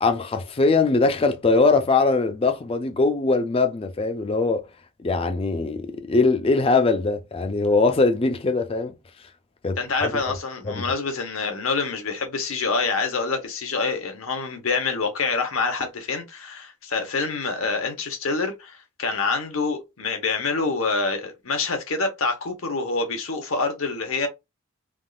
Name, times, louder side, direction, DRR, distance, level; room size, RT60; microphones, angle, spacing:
voice 1, 0.0-4.6 5.0-8.9 9.6-10.1 10.7-10.8, left 3 dB, 25° left, 0.4 m, -21 dB
voice 2, 9.8-24.3, left 4 dB, 75° left, 0.9 m, -26 dB
3.5 x 2.4 x 2.4 m
head